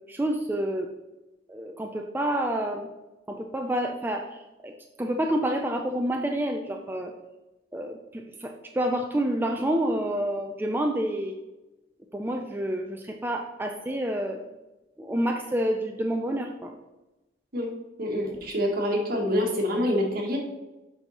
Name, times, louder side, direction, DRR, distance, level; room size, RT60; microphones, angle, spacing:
voice 1, 0.1-0.9 1.5-2.9 3.3-4.7 5.0-7.1 7.7-11.4 12.1-14.4 15.0-16.7, right 1 dB, 10° right, 3 dB, 0.4 m, -28 dB
voice 2, 18.0-20.4, equal, 55° right, 0 dB, 1.7 m, -26 dB
7.2 x 5.3 x 4.2 m, 1.0 s
head